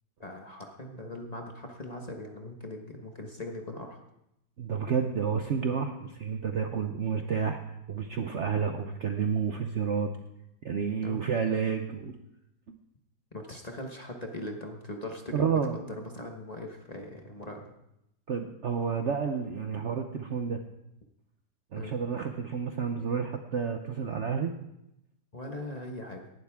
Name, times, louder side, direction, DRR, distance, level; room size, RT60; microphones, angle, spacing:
voice 1, 0.2-4.0 11.0-11.2 13.3-17.7 21.7-21.9 25.3-26.3, left 1 dB, 25° left, 2 dB, 1.1 m, -40 dB
voice 2, 4.6-7.6 7.9-10.1 10.6-12.1 12.7-12.8 15.3-15.8 18.3-20.6 21.7-24.5, right 6 dB, 55° right, 6 dB, 0.8 m, -30 dB
17.5 x 12.0 x 3.6 m, 0.84 s
omnidirectional pair, 1.9 m